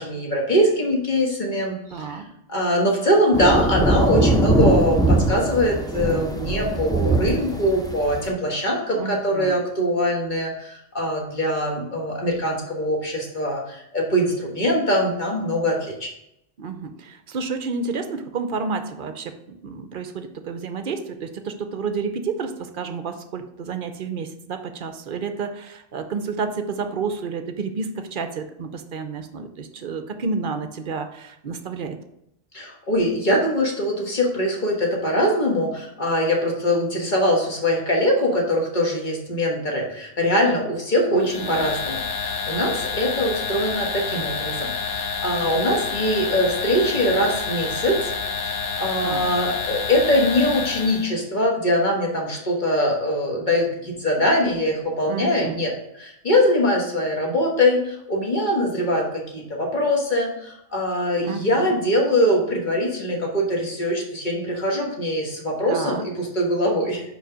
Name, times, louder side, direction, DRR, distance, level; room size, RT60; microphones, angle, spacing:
voice 1, 0.0-2.2 2.5-16.1 32.5-67.0, equal, 40° left, -1 dB, 1.5 m, -22 dB
voice 2, 1.9-2.3 8.9-9.6 16.6-32.0 41.1-41.7 49.0-49.3 55.0-55.6 61.2-61.7 65.7-66.1, right 4 dB, 55° right, 8 dB, 0.7 m, -30 dB
sound 1, 3.3-8.3, right 1 dB, 5° left, 0.4 m, -21 dB
sound 2, 41.2-51.1, left 5 dB, 75° left, 1.6 m, -28 dB
5.1 x 4.8 x 5.1 m, 0.80 s
omnidirectional pair, 1.2 m